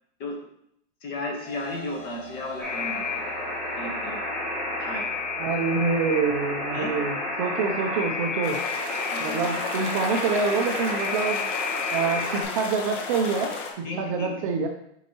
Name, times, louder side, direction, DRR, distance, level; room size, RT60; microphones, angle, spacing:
voice 1, 1.0-3.2 3.8-4.2 4.8-5.0 6.7-6.9 9.1-9.5 13.8-14.4, left 2 dB, 30° left, 1 dB, 1.2 m, -34 dB
sound 1, 1.4-7.0, left 1 dB, 80° left, 1.8 m, -45 dB
Alarm, 2.6-12.4, left 2 dB, ahead, 1.7 m, -30 dB
voice 2, 5.4-8.6 9.2-11.4 11.9-13.5 13.8-14.7, right 5 dB, 30° right, 3 dB, 0.5 m, -26 dB
sound 2, 8.4-13.7, left 4 dB, 50° left, 1.1 m, -34 dB
6.3 x 5.4 x 2.9 m, 0.72 s
supercardioid pair, 170°, 33 cm